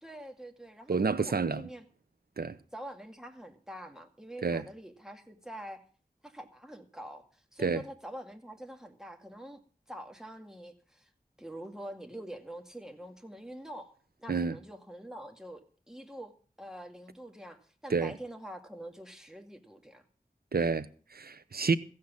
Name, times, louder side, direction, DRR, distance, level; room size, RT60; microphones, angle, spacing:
voice 1, 0.0-1.9 2.7-5.8 6.2-9.6 9.9-11.1 11.4-16.3 16.6-20.0, equal, 5° right, 2.2 m, -45 dB
voice 2, 0.9-1.7 2.4-2.5 4.4-4.6 7.6-7.8 14.3-14.6 17.9-18.1 20.5-21.8, right 4 dB, 75° right, 0.8 m, -29 dB
15.0 x 7.9 x 7.2 m
wide cardioid pair, 50°, 16 cm